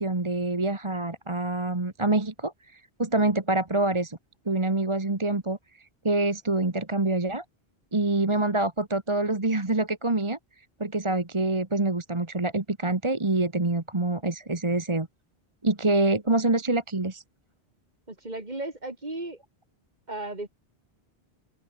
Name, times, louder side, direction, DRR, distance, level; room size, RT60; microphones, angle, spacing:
voice 1, 0.0-4.2 4.4-5.6 6.0-7.4 7.9-10.4 10.8-15.1 15.6-17.2, right 2 dB, 30° right, 1.7 m, -26 dB
voice 2, 18.1-19.4 20.1-20.5, right 2 dB, 45° right, 3.2 m, -35 dB
open air
omnidirectional pair, 1.1 m